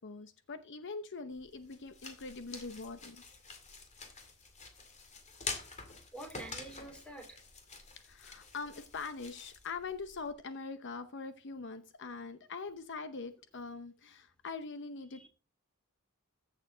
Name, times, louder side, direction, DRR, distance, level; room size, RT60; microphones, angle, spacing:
voice 1, 0.0-3.2 8.0-15.3, left 4 dB, 55° left, 0.8 m, -43 dB
sound 1, 1.3-10.3, left 4 dB, 30° left, 2.1 m, -47 dB
voice 2, 6.1-7.4 15.1-15.3, right 1 dB, 5° left, 2.6 m, -47 dB
14.5 x 6.8 x 3.8 m
head